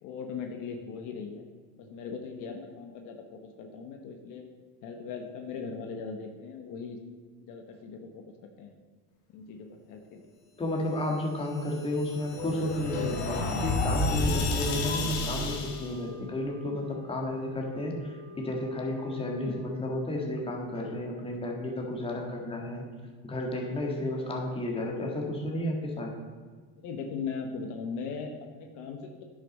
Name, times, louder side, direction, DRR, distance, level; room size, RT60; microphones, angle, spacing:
voice 1, 0.0-1.4 1.8-4.4 4.8-7.0 7.5-8.7 9.3-10.3 19.4-19.6 26.8-29.2, left 5 dB, 65° left, 4 dB, 1.1 m, -39 dB
voice 2, 10.6-22.8 23.2-26.2, left 1 dB, 15° left, 0 dB, 1.8 m, -32 dB
sound 1, 11.4-15.9, left 2 dB, 80° left, 1.9 m, -30 dB
sound 2, 15.2-20.1, left 5 dB, 55° right, 3.2 m, -48 dB
10.0 x 6.4 x 5.4 m, 1.5 s
cardioid pair, 135°, 33 cm